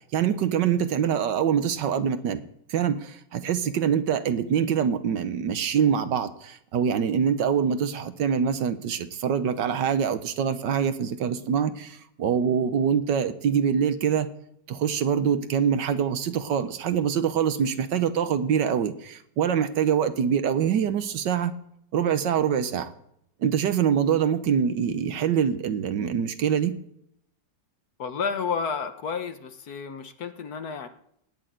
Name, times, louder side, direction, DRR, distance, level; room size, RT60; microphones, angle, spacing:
voice 1, 0.1-2.4 2.7-14.3 14.7-21.5 21.9-22.9 23.4-26.7, right 8 dB, 70° right, 11 dB, 1.5 m, -24 dB
voice 2, 28.0-30.9, left 5 dB, 60° left, 9 dB, 1.4 m, -31 dB
17.5 x 6.4 x 9.3 m, 0.74 s
omnidirectional pair, 2.0 m